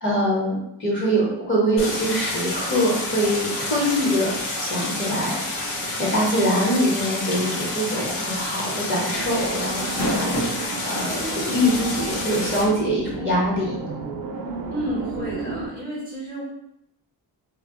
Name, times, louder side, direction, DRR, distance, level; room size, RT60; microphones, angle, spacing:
voice 1, 0.0-5.4 6.0-10.4 10.8-13.8, equal, 30° left, -7 dB, 0.9 m, -23 dB
Stream, 1.8-12.6, left 2 dB, 85° left, 0.7 m, -29 dB
sound 1, 8.0-8.3 8.6-8.7 9.7-10.6 11.4-11.5 13.1-13.2, equal, 55° left, 0.8 m, -26 dB
sound 2, 9.1-15.7, right 3 dB, 55° right, 0.5 m, -33 dB
voice 2, 14.7-16.4, equal, 5° left, -6 dB, 0.5 m, -31 dB
2.1 x 2.0 x 3.6 m, 0.80 s
wide cardioid pair, 140°, 43 cm